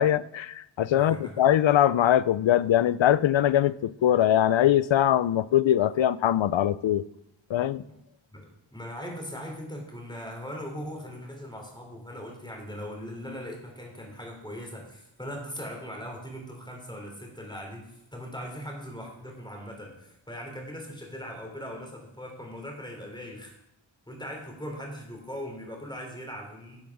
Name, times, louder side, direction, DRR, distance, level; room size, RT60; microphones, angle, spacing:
voice 1, 0.0-7.0 7.5-7.8, left 11 dB, 75° left, 0.5 m, -22 dB
voice 2, 1.0-1.4 7.8-7.9 8.3-23.6 24.1-26.8, equal, 10° left, 3.7 m, -40 dB
11.5 x 7.0 x 6.1 m
wide cardioid pair, 65°, 46 cm